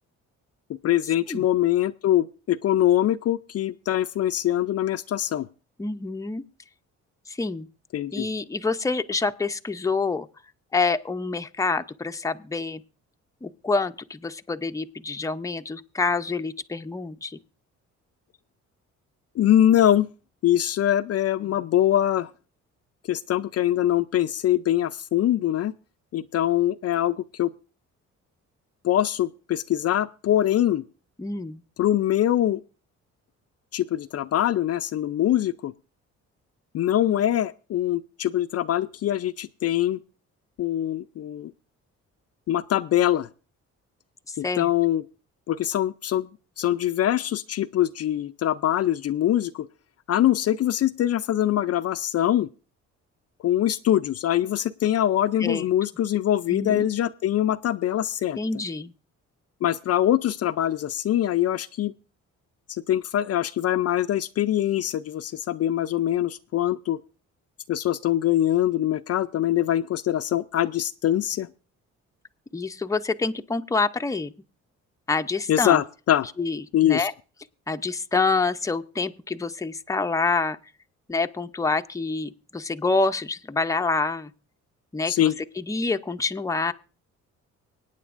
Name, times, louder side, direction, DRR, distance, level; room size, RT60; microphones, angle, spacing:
voice 1, 0.7-5.5 7.9-8.3 19.4-20.1 20.4-22.3 23.1-25.7 26.1-27.5 28.8-30.8 31.8-32.6 33.7-35.7 36.7-40.0 40.6-41.5 42.5-43.3 44.4-45.0 45.5-46.3 46.6-49.7 50.1-52.5 53.4-58.4 59.6-61.9 62.7-67.0 67.7-71.5 75.5-76.3 76.7-77.1 85.1-85.3, left 12 dB, 55° left, 12 dB, 0.5 m, -23 dB
voice 2, 5.8-6.4 7.3-7.7 8.1-10.3 10.7-12.8 13.4-17.4 31.2-31.6 44.3-44.7 55.4-55.6 56.5-56.9 58.4-58.9 72.5-74.3 75.1-75.8 76.4-77.1 77.7-80.6 81.1-84.3 84.9-86.7, left 3 dB, 10° left, 8 dB, 0.6 m, -27 dB
24.5 x 9.2 x 2.5 m, 0.35 s
cardioid pair, 90°, 30 cm